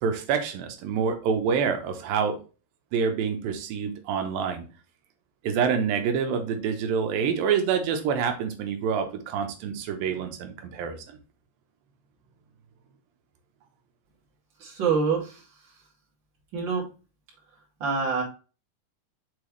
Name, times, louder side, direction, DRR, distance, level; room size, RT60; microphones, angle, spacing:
voice 1, 0.0-2.4 2.9-4.7 5.4-11.2, right 6 dB, 85° right, 5 dB, 2.7 m, -27 dB
voice 2, 14.6-15.4 16.5-16.8 17.8-18.2, right 5 dB, 35° right, -2 dB, 2.6 m, -25 dB
6.8 x 4.6 x 3.1 m, 0.33 s
omnidirectional pair, 4.0 m